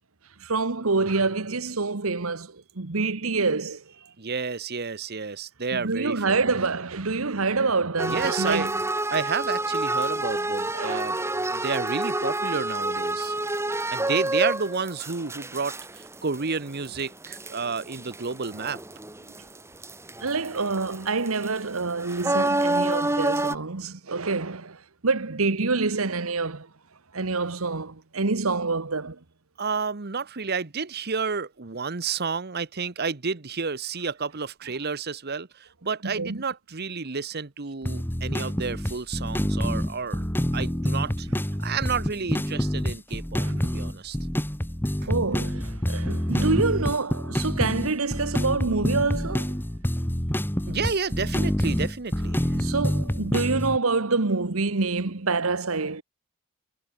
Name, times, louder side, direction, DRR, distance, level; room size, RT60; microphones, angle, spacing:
voice 1, 0.4-3.8 5.7-8.8 10.7-11.1 20.2-26.7 27.1-29.2 36.0-36.4 43.4-43.8 45.1-49.5 52.5-56.0, right 3 dB, 75° right, 1.4 m, -27 dB
voice 2, 4.2-6.5 8.1-8.7 9.1-11.2 11.5-13.4 13.9-18.8 29.6-40.3 40.5-41.3 41.6-44.2 50.7-52.6, right 5 dB, 50° right, 1.1 m, -30 dB
sound 1, 8.0-19.6 19.8-23.5, right 2 dB, 10° right, 2.1 m, -28 dB
sound 2, 37.8-53.8, equal, 10° left, 1.4 m, -27 dB
head